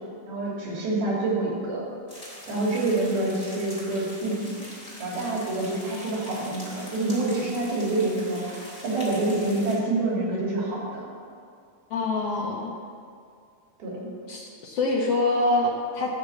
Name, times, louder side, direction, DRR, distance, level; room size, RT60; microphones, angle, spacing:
voice 1, 0.0-1.8 2.5-4.6 5.0-11.1 12.4-12.5 13.8-14.0, right 2 dB, 85° right, -4 dB, 4.8 m, -27 dB
sound 1, 2.1-9.8, equal, 10° left, 3.5 m, -43 dB
voice 2, 11.9-12.7 14.3-16.1, left 2 dB, 75° left, -2 dB, 1.4 m, -25 dB
13.0 x 6.9 x 7.2 m, 2.3 s
omnidirectional pair, 4.2 m